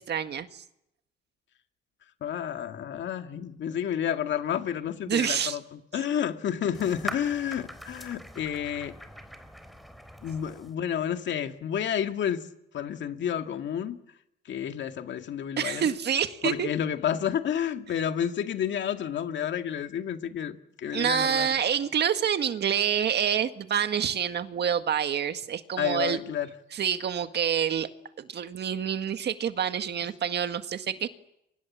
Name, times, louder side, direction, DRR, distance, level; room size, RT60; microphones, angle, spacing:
voice 1, 0.1-0.6 5.1-5.6 15.6-16.7 20.9-26.2 26.7-27.9 28.2-31.1, right 8 dB, 55° right, 1.9 m, -27 dB
voice 2, 2.2-9.0 10.2-12.5 12.7-14.0 14.5-15.9 16.4-21.6 25.8-26.5, left 9 dB, 65° left, 2.1 m, -30 dB
sound 1, 6.7-10.7, equal, ahead, 3.9 m, -42 dB
29.5 x 24.5 x 7.4 m
cardioid pair, 90°, 20 cm